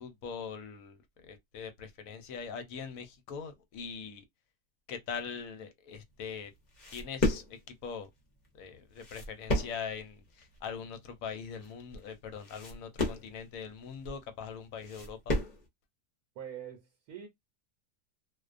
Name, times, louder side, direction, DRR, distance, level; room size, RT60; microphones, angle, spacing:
voice 1, 0.0-4.2 4.9-6.5 6.9-8.1 8.5-15.4, left 6 dB, 70° left, 0.9 m, -42 dB
sound 1, 6.1-15.7, left 2 dB, 40° left, 0.6 m, -35 dB
voice 2, 16.4-17.3, right 9 dB, 80° right, 1.1 m, -44 dB
2.5 x 2.1 x 2.4 m
omnidirectional pair, 1.6 m